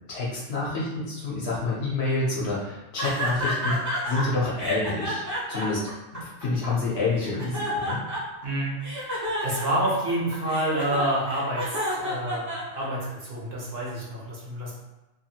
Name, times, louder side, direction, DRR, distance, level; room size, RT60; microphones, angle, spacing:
voice 1, 0.1-5.2 5.5-5.9 6.2-8.0, left 3 dB, 60° left, -5 dB, 0.9 m, -28 dB
sound 1, 3.0-4.2 4.6-6.7 7.2-8.4 8.8-13.1, equal, 20° right, 0.6 m, -30 dB
voice 2, 8.4-14.7, right 1 dB, 55° right, -5 dB, 1.0 m, -28 dB
2.8 x 2.5 x 2.7 m, 0.98 s
omnidirectional pair, 1.3 m